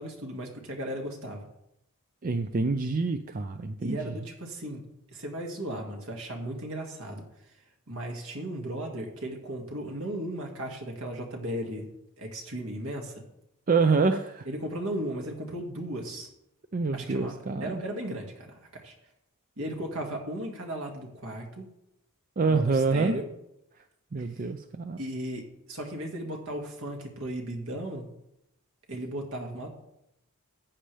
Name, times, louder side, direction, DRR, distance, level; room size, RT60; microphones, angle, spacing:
voice 1, 0.0-1.5 3.8-4.8 5.1-7.2 7.9-11.9 12.2-13.2 14.5-16.3 16.9-18.9 19.6-21.7 22.5-23.3 24.2-24.4 25.0-28.0 28.9-29.7, right 1 dB, 70° right, 1 dB, 2.1 m, -36 dB
voice 2, 2.2-4.1 13.7-14.5 16.7-17.8 22.4-23.2 24.1-25.0, right 4 dB, 40° right, 8 dB, 0.5 m, -26 dB
14.5 x 8.6 x 3.4 m, 0.82 s
head